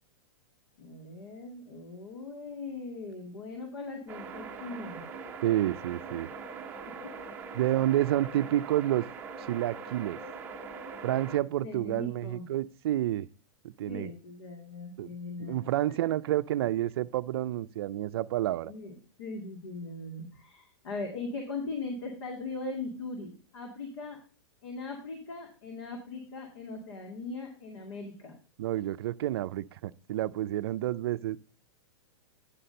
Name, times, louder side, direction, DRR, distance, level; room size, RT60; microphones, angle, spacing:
voice 1, 0.8-5.0 7.0-7.1 11.6-12.5 13.9-15.7 18.7-18.9 19.2-24.2 24.6-28.3, left 3 dB, 75° left, 2.2 m, -40 dB
sound 1, 4.1-11.4, right 5 dB, 10° right, 0.7 m, -42 dB
voice 2, 5.4-6.3 7.5-9.0 9.5-10.2 11.0-13.3 13.8-14.1 15.0-15.1 15.4-18.7 28.6-31.4, right 13 dB, 60° right, 0.4 m, -29 dB
9.7 x 4.3 x 6.4 m
supercardioid pair, 160°, 15 cm